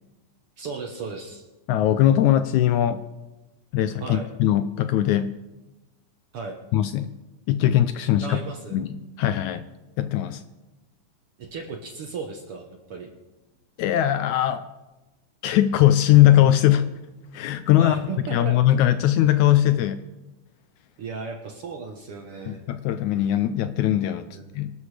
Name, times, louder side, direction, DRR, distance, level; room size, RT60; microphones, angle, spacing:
voice 1, 0.6-1.4 4.0-4.3 6.3-6.6 8.2-8.8 11.4-13.1 17.8-18.5 21.0-22.6 24.3-24.6, right 4 dB, 60° right, 3 dB, 1.6 m, -35 dB
voice 2, 1.7-3.0 3.7-5.3 6.7-7.1 7.5-8.4 8.7-9.6 10.0-10.4 13.8-14.6 15.4-16.9 17.3-18.0 18.3-20.0 22.5-24.3 24.5-24.7, left 12 dB, 80° left, 10 dB, 1.8 m, -20 dB
24.5 x 12.5 x 3.3 m, 1.1 s
omnidirectional pair, 3.7 m